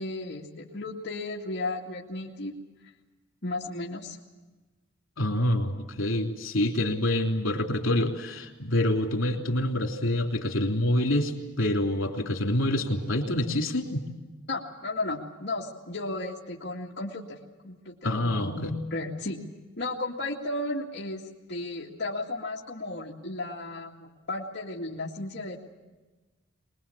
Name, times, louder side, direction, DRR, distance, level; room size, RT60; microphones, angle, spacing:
voice 1, 0.0-2.5 3.4-4.2 14.5-17.4 17.6-19.4 19.8-21.2 21.5-25.6, left 2 dB, 55° left, -4 dB, 2.3 m, -34 dB
voice 2, 5.2-14.0 18.0-18.7, left 1 dB, 80° left, 3 dB, 3.2 m, -26 dB
23.0 x 21.0 x 8.6 m, 1.2 s
head